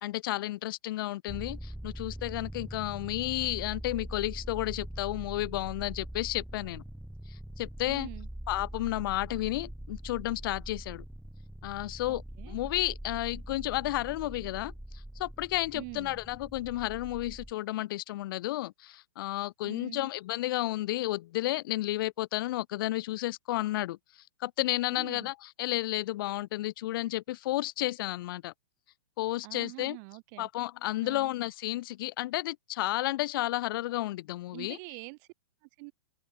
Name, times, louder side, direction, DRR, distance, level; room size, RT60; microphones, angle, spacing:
voice 1, 0.0-6.8 7.3-8.1 8.5-11.0 11.6-12.2 12.5-14.7 15.2-24.0 24.4-28.5 29.2-30.0 30.4-34.8, left 16 dB, 55° left, 0.7 m, -32 dB
sound 1, 1.3-17.5, right 1 dB, ahead, 0.6 m, -43 dB
voice 2, 7.9-8.3 12.1-12.6 15.7-16.2 19.6-20.1 24.9-25.3 29.4-30.5 31.0-31.3 34.5-35.3 35.6-35.9, right 36 dB, 40° right, 0.9 m, -45 dB
open air
hypercardioid pair, 125°, 14 cm